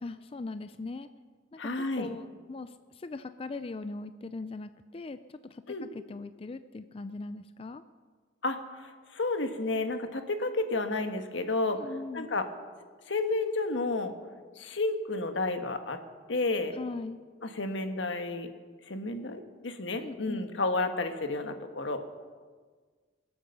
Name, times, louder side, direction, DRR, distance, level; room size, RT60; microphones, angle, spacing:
voice 1, 0.0-1.1 1.5-1.6 2.0-7.8 11.8-12.3 16.8-17.2 20.0-20.5, left 3 dB, 30° left, 12 dB, 0.4 m, -40 dB
voice 2, 1.6-2.1 5.7-5.9 8.4-11.8 12.1-12.5 13.1-14.1 14.6-16.0 16.3-16.8 17.4-18.5 18.9-22.0, left 2 dB, 85° left, 7 dB, 1.4 m, -31 dB
21.0 x 8.7 x 6.9 m, 1.5 s
head